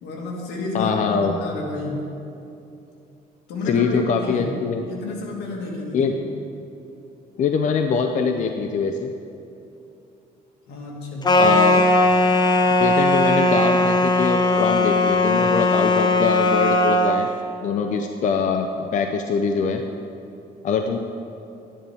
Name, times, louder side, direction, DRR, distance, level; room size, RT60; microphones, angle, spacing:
voice 1, 0.0-2.0 3.5-4.6 4.9-6.2 10.7-11.5, left 2 dB, 85° left, -2 dB, 2.2 m, -30 dB
voice 2, 0.7-1.3 3.7-4.8 5.9-6.1 7.4-9.1 11.4-11.8 12.8-17.3 17.6-19.8 20.6-21.0, left 5 dB, 50° left, 5 dB, 0.6 m, -23 dB
sound 1, 11.2-17.2, left 2 dB, 25° left, 0.9 m, -18 dB
12.0 x 10.0 x 3.5 m, 2.8 s
cardioid pair, 110°, 17 cm